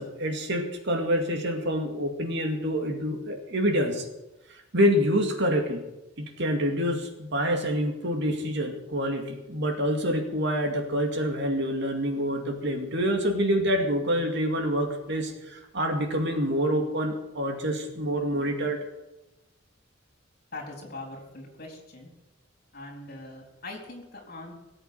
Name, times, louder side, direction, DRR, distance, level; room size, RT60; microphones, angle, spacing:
voice 1, 0.0-4.0 4.7-5.8 6.2-18.8, equal, 60° right, 3 dB, 2.3 m, -27 dB
voice 2, 20.5-22.1 22.7-24.5, left 2 dB, 50° left, 1 dB, 3.9 m, -41 dB
18.0 x 7.9 x 7.9 m, 0.99 s
head